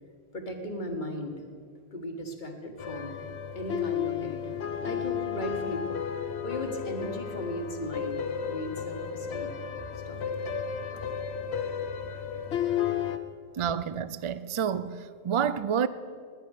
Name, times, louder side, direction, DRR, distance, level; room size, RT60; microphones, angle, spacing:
voice 1, 0.3-1.4 1.9-3.2 3.6-6.0 6.4-8.2 8.5-9.5 10.1-10.5, left 1 dB, 50° left, 1.7 m, -37 dB
sound 1, 2.8-13.2, left 8 dB, 85° left, 1.1 m, -33 dB
voice 2, 13.6-15.9, right 8 dB, 50° right, 0.3 m, -29 dB
20.0 x 9.5 x 6.5 m
omnidirectional pair, 1.1 m